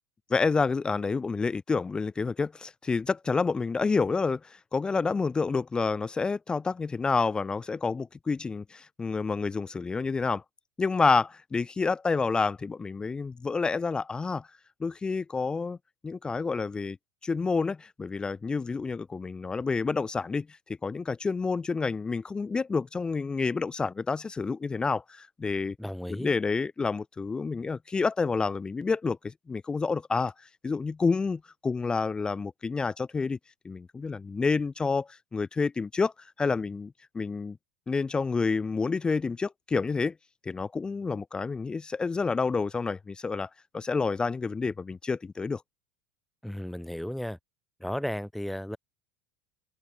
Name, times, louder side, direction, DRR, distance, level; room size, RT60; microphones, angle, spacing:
voice 1, 0.3-10.4 10.8-14.5 14.8-15.8 16.0-17.0 17.2-25.8 26.2-33.4 33.6-37.6 37.9-40.1 40.4-45.6, left 4 dB, 15° left, 0.7 m, -29 dB
voice 2, 25.8-26.3 46.4-47.4 47.8-48.8, equal, ahead, 1.8 m, -34 dB
open air
hypercardioid pair, 90°, 5 cm